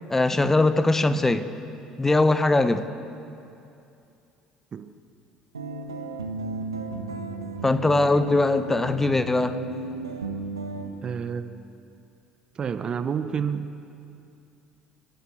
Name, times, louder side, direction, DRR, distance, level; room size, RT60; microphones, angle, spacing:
voice 1, 0.1-1.5 2.0-2.8 7.6-9.6, left 2 dB, 15° left, 11 dB, 1.1 m, -21 dB
sound 1, 5.5-10.9, right 3 dB, 85° right, 1.4 m, -34 dB
voice 2, 11.0-11.6 12.5-13.7, right 7 dB, 40° right, 11 dB, 1.0 m, -29 dB
29.5 x 13.0 x 7.1 m, 2.6 s
figure-of-eight pair, 60°, 2 cm